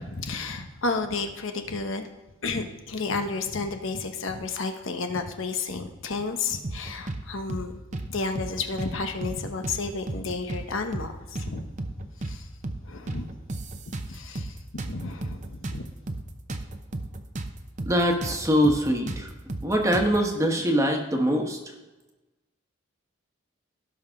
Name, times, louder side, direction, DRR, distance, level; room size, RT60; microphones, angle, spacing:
voice 1, 0.1-2.1 2.4-7.7 8.1-11.7 12.2-12.5 12.8-13.3 14.1-15.9, left 3 dB, 70° left, 6 dB, 1.0 m, -32 dB
sound 1, 6.6-7.2 7.5-7.7 7.9-8.9 9.2-9.4 9.6-10.7 10.9-11.1 11.4-12.4 12.6-12.8 13.1-14.5 14.8-17.5 17.8-17.9 18.2-20.2, right 2 dB, 35° right, 0.7 m, -34 dB
voice 2, 17.9-19.3 19.6-21.6, equal, 15° right, 2 dB, 1.3 m, -23 dB
17.0 x 5.8 x 3.7 m, 1.1 s
head